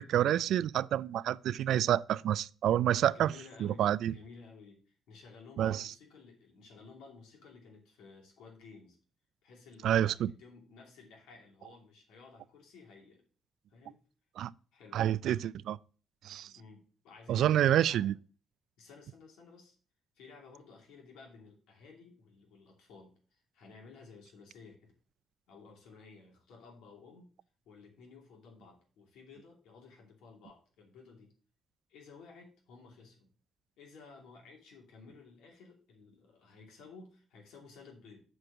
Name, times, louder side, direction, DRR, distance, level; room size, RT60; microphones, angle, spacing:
voice 1, 0.0-3.3 3.6-4.1 5.6-5.9 9.8-10.3 14.4-14.5 14.9-15.8 16.2-16.5 17.3-18.1, right 11 dB, 75° right, 0.3 m, -28 dB
voice 2, 3.1-9.0 9.4-13.2 13.7-14.0 14.7-15.2 16.5-18.1 18.8-19.8 20.1-24.9 25.5-27.3 27.6-31.3 31.9-33.3 33.8-38.2, left 4 dB, 90° left, 2.7 m, -55 dB
7.8 x 4.7 x 5.9 m
cardioid pair, 90°, 0 cm